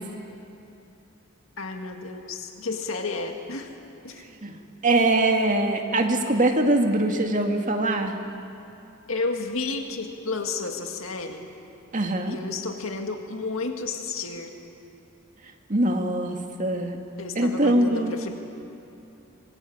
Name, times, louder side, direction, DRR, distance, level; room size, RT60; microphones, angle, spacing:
voice 1, 1.6-3.8 4.0-4.2 9.1-11.5 12.3-14.6 17.2-18.3, left 3 dB, 80° left, 4 dB, 1.9 m, -32 dB
voice 2, 4.8-8.2 11.9-12.4 15.7-17.0 17.4-18.3, right 2 dB, 40° right, 3 dB, 2.1 m, -23 dB
26.0 x 21.0 x 8.7 m, 2.8 s
head